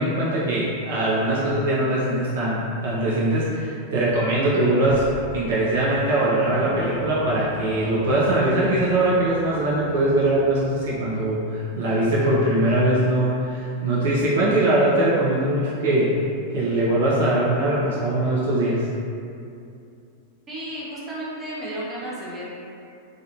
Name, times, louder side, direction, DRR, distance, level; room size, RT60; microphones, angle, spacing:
voice 1, 0.0-5.0 5.3-16.1 16.5-18.8, right 1 dB, 55° right, -7 dB, 0.4 m, -21 dB
sound 1, 4.8-5.3 5.9-6.0 6.4-11.1, right 1 dB, 65° left, 0.7 m, -36 dB
voice 2, 20.5-22.5, right 1 dB, 20° right, -8 dB, 0.7 m, -33 dB
2.4 x 2.3 x 2.3 m, 2.6 s
figure-of-eight pair, 90°, 0 cm